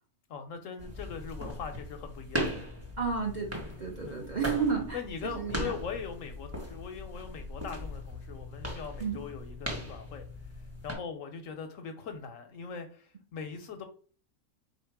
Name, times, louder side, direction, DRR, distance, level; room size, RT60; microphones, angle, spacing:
voice 1, 0.3-2.5 4.0-4.2 4.9-10.3 10.8-13.9, left 6 dB, 70° left, 0.9 m, -41 dB
sound 1, 0.8-11.0, equal, 10° right, 1.0 m, -39 dB
voice 2, 3.0-3.5 3.8-5.7 9.0-9.2, right 5 dB, 40° right, 0.7 m, -32 dB
4.0 x 2.8 x 4.5 m
omnidirectional pair, 1.6 m